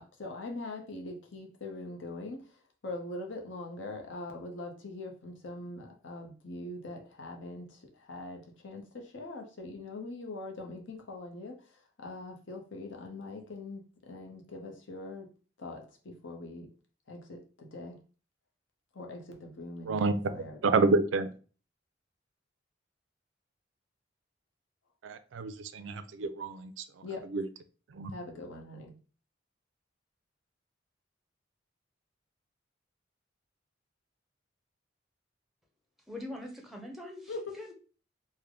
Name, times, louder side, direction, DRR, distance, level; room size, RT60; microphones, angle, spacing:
voice 1, 0.0-2.4 2.8-11.6 12.0-15.3 15.6-16.7 17.1-18.0 18.9-20.8 27.0-27.3 28.1-28.9 37.3-37.4, left 2 dB, 75° left, 0.8 m, -42 dB
voice 2, 19.9-20.2 20.6-21.3 25.0-26.7 27.3-27.5 27.9-28.1, right 3 dB, 80° right, 0.4 m, -28 dB
voice 3, 36.1-37.7, left 1 dB, ahead, 0.6 m, -43 dB
3.3 x 2.1 x 3.6 m
head